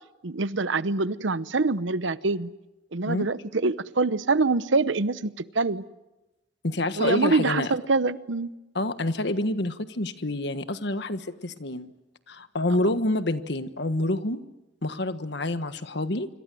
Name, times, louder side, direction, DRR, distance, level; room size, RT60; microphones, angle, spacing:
voice 1, 0.2-2.5 2.9-5.8 7.0-8.5, right 3 dB, 85° right, 15 dB, 0.9 m, -25 dB
voice 2, 6.6-7.8 8.7-11.9 12.3-14.4 14.8-16.3, left 1 dB, 65° left, 11 dB, 1.4 m, -27 dB
26.5 x 25.0 x 7.7 m, 0.99 s
head